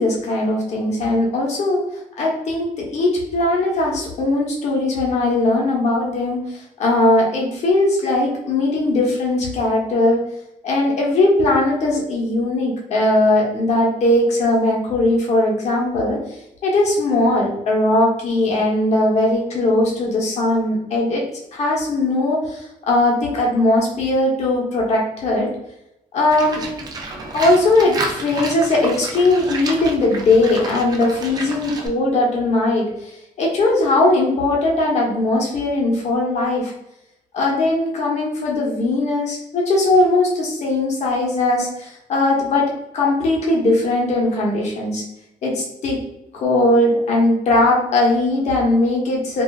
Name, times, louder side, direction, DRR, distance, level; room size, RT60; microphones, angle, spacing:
voice 1, 0.0-1.8 2.2-10.3 10.6-21.2 21.5-25.5 26.1-26.6 27.3-36.7 37.3-45.0 45.4-46.0 46.3-49.4, left 2 dB, 50° left, -2 dB, 0.8 m, -19 dB
Livestock farm animals working animals, 26.3-31.9, right 2 dB, 25° right, 0.4 m, -30 dB
3.3 x 2.5 x 2.3 m, 0.85 s
cardioid pair, 170°, 15 cm